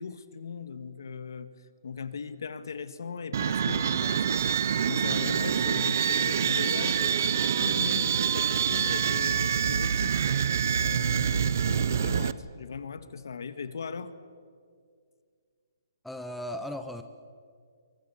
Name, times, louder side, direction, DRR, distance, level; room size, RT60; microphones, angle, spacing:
voice 1, 0.0-1.5 1.8-14.1, left 5 dB, 65° left, 11 dB, 1.8 m, -39 dB
sound 1, 3.3-12.3, right 8 dB, 45° right, 0.7 m, -26 dB
voice 2, 16.0-17.0, equal, ahead, 6 dB, 0.6 m, -36 dB
28.0 x 23.0 x 7.2 m, 2.1 s
hypercardioid pair, 175°, 2 cm